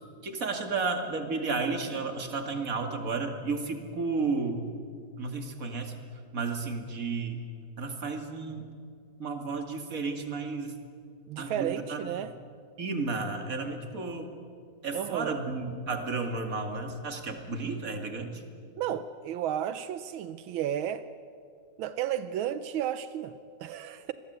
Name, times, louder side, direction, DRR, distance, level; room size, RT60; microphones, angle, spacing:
voice 1, 0.2-4.7 5.2-5.9 6.3-7.4 7.8-8.7 9.2-10.7 11.4-12.1 12.8-14.4 14.8-18.4, right 4 dB, 45° right, 5 dB, 2.6 m, -32 dB
voice 2, 11.3-12.3 14.9-15.4 18.8-21.1 21.8-24.1, right 10 dB, 85° right, 12 dB, 1.6 m, -33 dB
27.0 x 21.0 x 8.1 m, 2.3 s
omnidirectional pair, 2.2 m